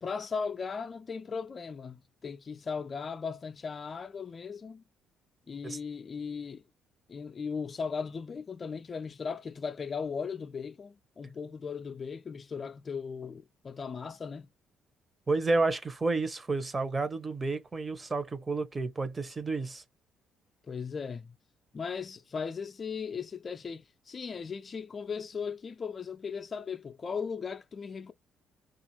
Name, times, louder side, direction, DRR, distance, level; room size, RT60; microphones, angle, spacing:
voice 1, 0.0-4.8 5.5-6.6 7.1-14.5 20.7-21.3 21.7-28.1, left 5 dB, 40° left, 0.4 m, -37 dB
voice 2, 15.3-19.8, right 3 dB, 30° right, 0.8 m, -30 dB
2.5 x 2.4 x 2.9 m
hypercardioid pair, 55°, 0 cm